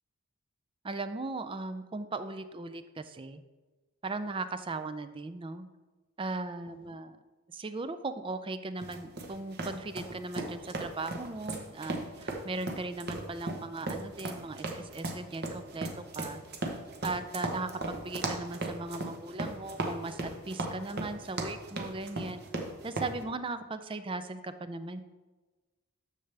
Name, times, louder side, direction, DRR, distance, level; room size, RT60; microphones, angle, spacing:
voice 1, 0.8-3.4 4.0-5.7 6.2-7.2 7.5-15.9 16.2-16.4 17.0-22.4 22.8-25.0, right 3 dB, 25° right, 10 dB, 0.4 m, -38 dB
sound 1, 8.8-23.1, right 2 dB, 45° right, 0.9 m, -37 dB
9.9 x 6.9 x 3.3 m, 1.3 s
head